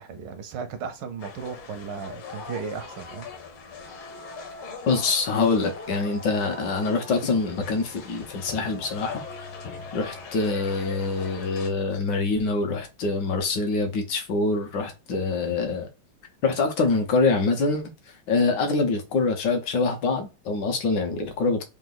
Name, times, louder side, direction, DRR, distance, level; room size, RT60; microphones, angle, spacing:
voice 1, 0.0-3.3, right 6 dB, 75° right, 1.0 m, -35 dB
sound 1, 1.2-11.7, left 4 dB, 80° left, 1.8 m, -40 dB
voice 2, 4.8-9.2 9.9-15.9 16.4-17.8 18.3-21.7, left 3 dB, 60° left, 1.3 m, -25 dB
3.9 x 2.6 x 3.9 m
omnidirectional pair, 2.3 m